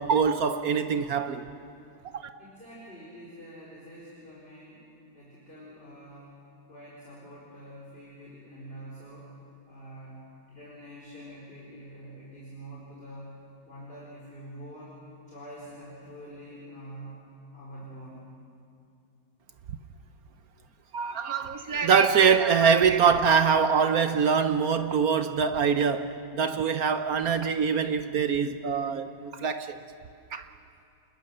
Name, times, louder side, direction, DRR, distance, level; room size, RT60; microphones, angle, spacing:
voice 1, 0.0-1.5 2.1-2.2 20.9-29.8 30.3-30.5, right 6 dB, 65° right, 1.0 m, -24 dB
voice 2, 2.4-4.8 5.1-6.4 6.7-9.3 9.7-10.2 10.5-13.3 13.6-15.0 15.3-17.2 17.5-18.2, right 1 dB, 25° left, 4.5 m, -46 dB
28.5 x 21.0 x 6.7 m
omnidirectional pair, 2.2 m